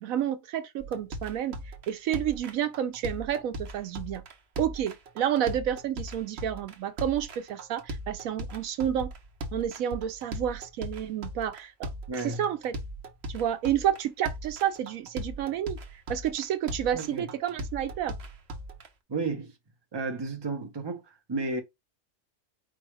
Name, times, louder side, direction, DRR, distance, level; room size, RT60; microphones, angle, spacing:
voice 1, 0.0-1.6 1.9-4.2 4.6-9.1 9.5-11.9 12.2-12.7 13.3-15.8 16.1-18.2, right 10 dB, 75° right, 1.0 m, -30 dB
sound 1, 0.8-18.9, right 1 dB, 55° right, 1.0 m, -39 dB
voice 2, 12.1-12.5 16.9-17.3 19.1-19.5 19.9-21.6, right 3 dB, 25° right, 0.6 m, -32 dB
4.7 x 2.4 x 4.6 m
omnidirectional pair, 1.5 m